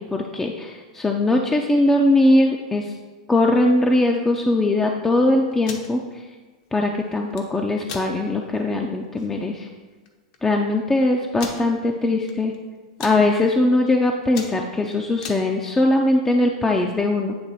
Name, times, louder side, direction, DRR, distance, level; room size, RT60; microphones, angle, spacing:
voice 1, 0.0-2.9 3.3-6.2 6.7-9.7 10.4-12.5 13.0-17.3, left 2 dB, 10° left, 1 dB, 0.4 m, -20 dB
sound 1, 5.5-5.9 7.1-7.4 7.8-8.1 8.6-8.7 9.0-9.3 10.1-10.2 10.3-10.4 11.4-11.6 12.2-12.6 12.8-13.2 13.7-13.9 14.2-15.4, left 6 dB, 60° left, 0.8 m, -36 dB
8.5 x 3.0 x 4.1 m, 1.4 s
hypercardioid pair, 120°, 4 cm